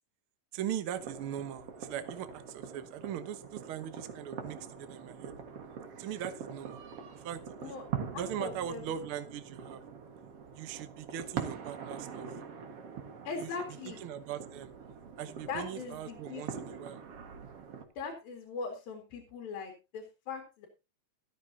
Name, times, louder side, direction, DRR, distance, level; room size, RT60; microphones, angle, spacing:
voice 1, 0.5-5.3 6.0-6.8 7.1-7.7 8.2-9.8 10.5-12.4 13.4-14.7 15.2-17.0, right 9 dB, 70° right, 10 dB, 1.3 m, -40 dB
sound 1, 1.0-17.8, right 7 dB, 50° right, 2.3 m, -44 dB
voice 2, 8.1-8.8 13.2-14.0 15.5-16.5 18.0-20.7, left 4 dB, 85° left, 3 dB, 4.2 m, -40 dB
13.5 x 13.5 x 2.8 m, 0.28 s
omnidirectional pair, 4.1 m